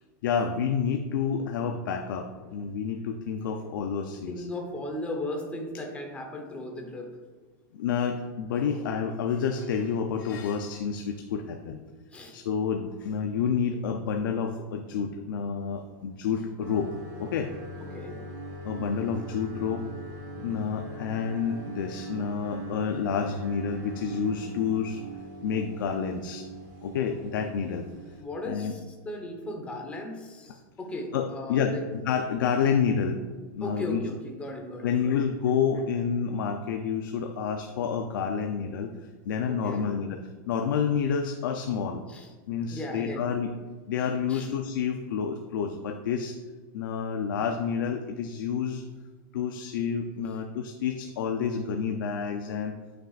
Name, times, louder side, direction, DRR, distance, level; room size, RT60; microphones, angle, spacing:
voice 1, 0.2-4.3 7.7-11.8 12.3-16.9 17.2-17.5 18.6-19.9 20.4-25.0 25.4-26.5 26.8-27.9 28.4-28.7 31.1-31.7 32.0-33.2 33.5-34.0 34.8-38.9 39.3-42.0 42.5-43.5 43.9-46.4 46.7-48.8 49.3-52.7, left 6 dB, 85° left, 5 dB, 0.6 m, -29 dB
voice 2, 4.3-7.1 12.1-12.4 17.9-18.2 28.2-31.9 33.6-35.1 39.5-39.9 42.1-42.3 42.7-43.3 44.3-44.5, left 1 dB, 10° left, 2 dB, 1.0 m, -36 dB
sound 1, 16.6-28.2, right 2 dB, 35° right, 1.5 m, -41 dB
9.4 x 6.1 x 2.5 m, 1.4 s
supercardioid pair, 160°, 11 cm